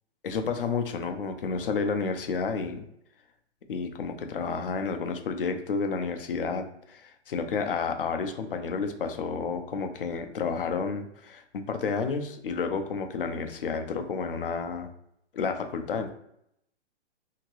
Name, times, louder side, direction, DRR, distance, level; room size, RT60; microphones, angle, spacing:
voice 1, 0.2-2.9 3.7-14.9 15.3-16.1, left 5 dB, 55° left, 6 dB, 0.5 m, -31 dB
2.8 x 2.7 x 3.0 m, 0.76 s
hypercardioid pair, 175°, 34 cm